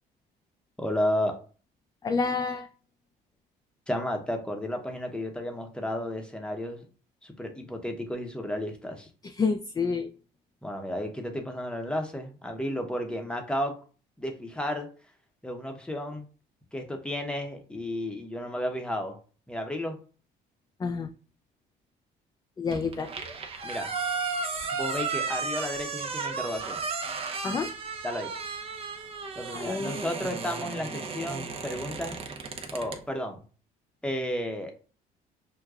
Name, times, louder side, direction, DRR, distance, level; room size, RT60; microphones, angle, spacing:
voice 1, 0.8-1.3 3.9-6.8 7.2-9.1 10.6-13.7 14.2-14.9 15.4-16.3 16.7-19.2 19.5-20.0 23.6-23.9 24.7-26.8 28.0-28.3 29.4-32.2 32.7-33.4 34.0-34.7, left 1 dB, 5° left, 4 dB, 0.8 m, -32 dB
voice 2, 2.0-2.7 9.2-10.1 20.8-21.1 22.6-23.1 27.4-27.7 29.5-30.0, left 5 dB, 20° left, 4 dB, 0.4 m, -28 dB
sound 1, 22.7-33.0, right 4 dB, 35° right, 0.7 m, -34 dB
6.3 x 2.2 x 2.3 m, 0.38 s
cardioid pair, 110°, 17 cm